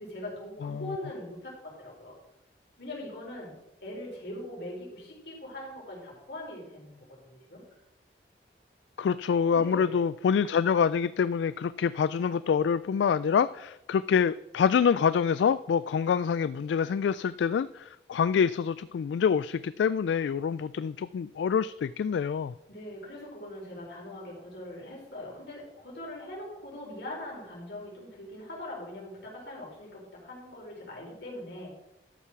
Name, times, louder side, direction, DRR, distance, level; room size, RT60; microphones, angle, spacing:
voice 1, 0.0-2.2 2.8-7.6 9.3-9.9 22.7-31.7, left 1 dB, 65° left, -3 dB, 4.4 m, -41 dB
voice 2, 0.6-1.0 9.0-22.5, left 7 dB, 85° left, 16 dB, 0.3 m, -26 dB
12.5 x 5.7 x 6.1 m, 0.90 s
head